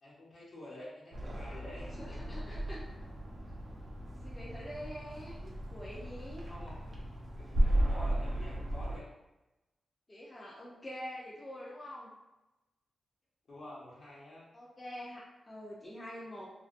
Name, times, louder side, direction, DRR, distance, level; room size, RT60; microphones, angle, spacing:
voice 1, 0.0-2.2 6.5-7.0 7.4-9.1 13.5-14.5, left 1 dB, 60° left, -6 dB, 0.9 m, -49 dB
sound 1, 1.1-9.0, right 1 dB, 55° right, 0.4 m, -35 dB
voice 2, 2.0-2.8 4.2-6.5 10.1-12.1 14.5-16.5, equal, 20° left, -6 dB, 0.5 m, -45 dB
2.3 x 2.2 x 2.5 m, 0.98 s
cardioid pair, 90°, 0 cm